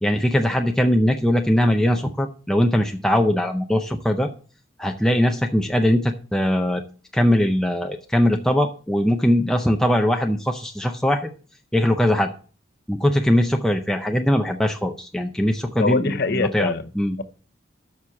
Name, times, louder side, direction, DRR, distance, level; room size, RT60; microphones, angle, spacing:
voice 1, 0.0-4.3 4.8-6.8 7.1-11.3 11.7-12.3 12.9-17.2, equal, 5° left, 0.6 m, -21 dB
voice 2, 15.8-16.8, left 3 dB, 55° left, 0.8 m, -23 dB
7.3 x 6.2 x 7.0 m
head